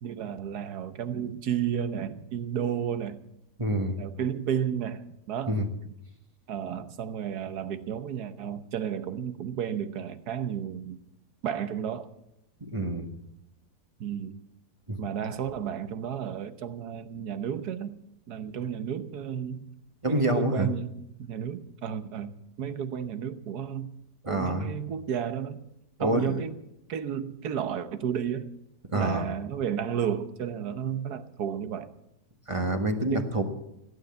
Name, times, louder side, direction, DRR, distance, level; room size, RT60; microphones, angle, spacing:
voice 1, 0.0-3.2 4.0-5.6 5.8-5.9 6.5-11.0 11.4-12.1 14.0-14.4 15.0-18.0 18.3-19.7 20.1-23.9 24.3-25.6 26.0-26.6 26.9-28.5 28.9-31.9 33.1-33.3, right 8 dB, 70° right, 1.5 m, -32 dB
voice 2, 3.6-4.0 5.5-5.7 12.6-13.1 14.9-15.0 20.0-20.7 24.2-24.7 26.0-26.4 28.9-29.2 32.5-33.4, right 1 dB, 20° right, 1.2 m, -27 dB
15.5 x 9.5 x 8.6 m
omnidirectional pair, 1.8 m